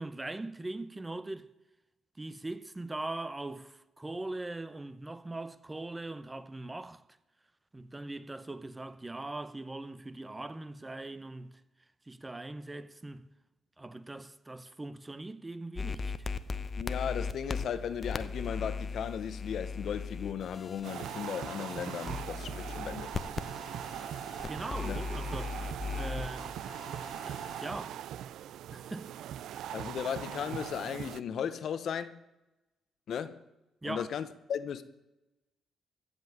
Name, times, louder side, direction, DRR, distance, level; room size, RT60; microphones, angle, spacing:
voice 1, 0.0-1.5 2.2-7.0 7.7-11.6 12.1-13.3 13.8-16.1 24.5-25.6 25.9-26.5 27.2-28.0 28.7-29.1 33.8-34.1, right 2 dB, 15° right, 0.8 m, -41 dB
sound 1, 15.8-27.7, left 4 dB, 40° left, 0.8 m, -39 dB
voice 2, 16.8-23.1 24.8-25.0 29.7-32.2 33.1-33.4 33.8-34.8, left 8 dB, 65° left, 0.9 m, -36 dB
sound 2, 20.8-31.2, right 11 dB, 80° right, 0.4 m, -40 dB
15.0 x 5.5 x 9.3 m
cardioid pair, 90°, 0 cm